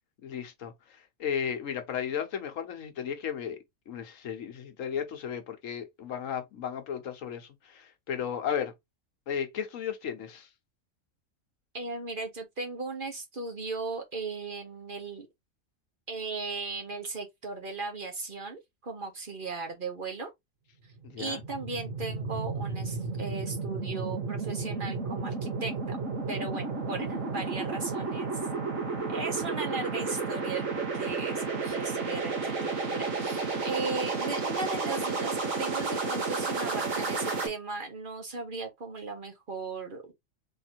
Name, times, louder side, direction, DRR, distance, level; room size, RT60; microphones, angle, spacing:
voice 1, 0.2-8.7 9.3-10.5 21.0-21.4, left 8 dB, 70° left, 1.2 m, -35 dB
voice 2, 11.7-15.3 16.1-20.3 21.2-26.0 26.3-28.4 29.1-40.1, right 3 dB, 45° right, 1.0 m, -37 dB
sound 1, 20.9-37.5, right 4 dB, 70° right, 1.5 m, -32 dB
3.6 x 2.6 x 4.3 m
omnidirectional pair, 1.4 m